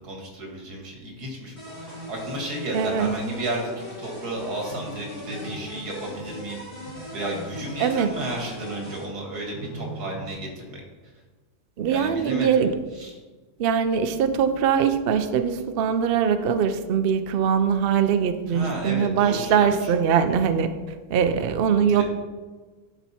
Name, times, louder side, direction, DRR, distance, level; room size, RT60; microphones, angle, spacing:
voice 1, 0.0-6.6 7.1-10.8 11.9-12.6 12.9-13.2 18.5-19.9 21.9-22.0, right 1 dB, 85° right, 0 dB, 2.4 m, -33 dB
sound 1, 1.6-9.1, equal, 80° left, 2.9 m, -40 dB
sound 2, 1.7-10.3, right 3 dB, 15° left, 2.1 m, -44 dB
voice 2, 2.7-3.1 7.8-8.1 11.8-12.7 13.6-20.7 21.1-22.0, right 7 dB, 65° right, 9 dB, 0.5 m, -22 dB
11.0 x 4.6 x 4.2 m, 1.4 s
omnidirectional pair, 1.6 m